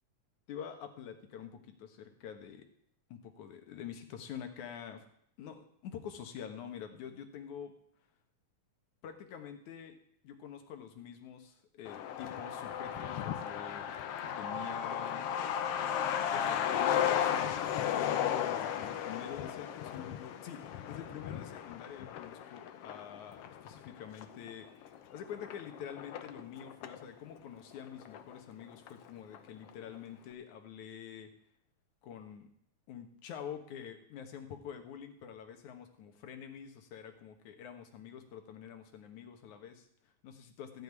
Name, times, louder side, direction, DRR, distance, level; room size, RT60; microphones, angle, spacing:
voice 1, 0.5-2.7 3.1-5.1 5.4-7.7 9.0-10.0 10.2-13.9 14.2-15.2 16.3-31.3 32.0-32.5 32.9-40.8, left 8 dB, 85° left, 6 dB, 2.9 m, -47 dB
Truck, 11.9-27.0 27.4-27.5 27.7-28.6 28.9-29.0 29.3-29.7, left 9 dB, 65° left, 1.7 m, -35 dB
15.5 x 5.4 x 9.6 m, 0.67 s
omnidirectional pair, 3.3 m